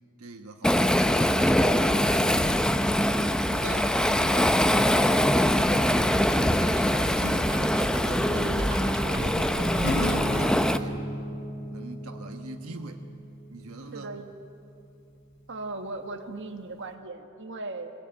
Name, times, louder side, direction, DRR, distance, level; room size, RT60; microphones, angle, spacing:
voice 1, 0.2-2.6 3.1-6.6 7.0-7.6 8.3-11.0 11.7-13.1 13.5-14.1, right 3 dB, 75° right, 4 dB, 1.2 m, -41 dB
Waves surf, 0.6-10.8, equal, 5° left, 0.5 m, -23 dB
voice 2, 5.6-6.0 13.9-14.2 15.5-17.9, right 2 dB, 55° right, 6 dB, 1.3 m, -38 dB
sound 1, 6.3-11.1, right 1 dB, 20° right, 3.6 m, -34 dB
Acoustic guitar / Strum, 9.8-15.3, left 1 dB, 55° left, 3.9 m, -35 dB
21.5 x 18.0 x 9.0 m, 2.6 s
head